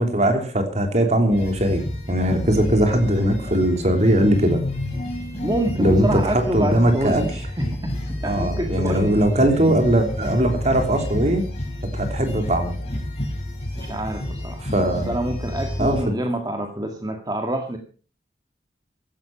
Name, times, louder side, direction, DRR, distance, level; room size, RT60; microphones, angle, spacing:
voice 1, 0.0-1.8 2.1-4.6 5.8-7.2 8.2-11.4 11.9-12.7 14.6-15.1 15.8-16.0, right 1 dB, 40° right, 5 dB, 3.2 m, -20 dB
sound 1, 1.3-16.0, left 1 dB, 35° left, 6.1 m, -30 dB
voice 2, 5.4-9.2 13.8-17.8, right 1 dB, 20° right, 4 dB, 1.8 m, -27 dB
16.0 x 12.5 x 5.9 m, 0.40 s
head